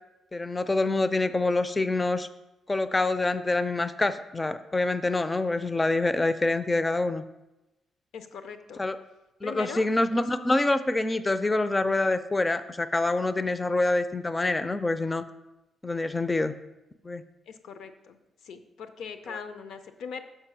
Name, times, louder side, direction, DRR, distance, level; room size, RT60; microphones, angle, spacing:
voice 1, 0.3-2.3 2.7-7.2 8.8-9.0 9.4-15.2 15.8-16.5 17.0-17.2, left 2 dB, 15° left, 12 dB, 0.4 m, -26 dB
voice 2, 8.1-8.8 9.4-10.3 17.5-18.2 18.4-20.2, left 6 dB, 80° left, 9 dB, 0.6 m, -40 dB
6.6 x 4.9 x 6.0 m, 0.97 s
cardioid pair, 115°, 0 cm